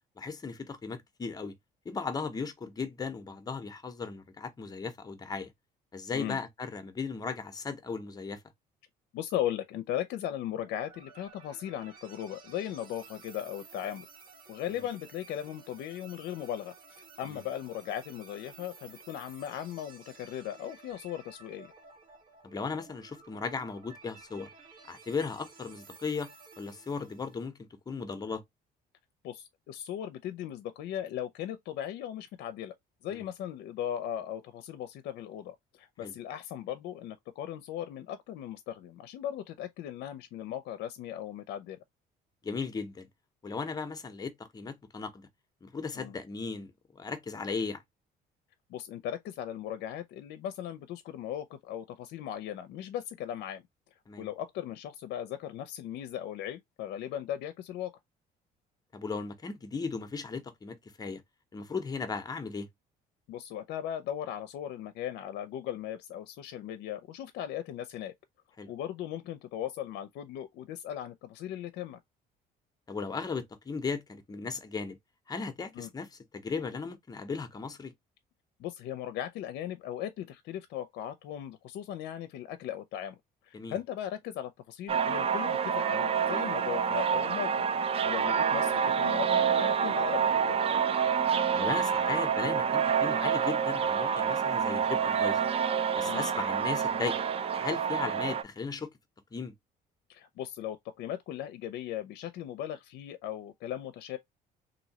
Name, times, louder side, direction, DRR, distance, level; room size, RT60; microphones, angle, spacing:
voice 1, 0.2-1.6 1.8-5.5 5.9-8.4 14.7-14.8 17.3-17.4 22.4-24.5 24.9-26.3 26.6-27.6 27.9-28.4 33.1-33.3 36.0-36.1 42.4-43.1 43.4-45.3 45.6-47.8 54.1-54.3 58.9-61.2 61.5-62.7 68.6-68.7 72.9-75.0 75.3-77.9 83.5-83.8 91.5-95.5 96.0-97.2 97.6-98.9 99.3-99.5, left 4 dB, 25° left, 0.7 m, -36 dB
voice 2, 9.1-14.1 14.5-21.7 29.2-32.7 33.0-41.8 45.9-46.1 48.7-53.6 54.2-57.9 63.3-68.1 68.7-72.0 75.7-75.9 78.6-83.2 83.4-87.7 88.0-90.7 96.0-96.3 100.1-104.2, left 11 dB, 75° left, 0.5 m, -38 dB
sound 1, 10.6-27.5, right 4 dB, 55° right, 1.3 m, -54 dB
sound 2, 84.9-98.4, right 7 dB, 35° right, 0.4 m, -28 dB
3.1 x 2.6 x 2.7 m
cardioid pair, 110°, 17 cm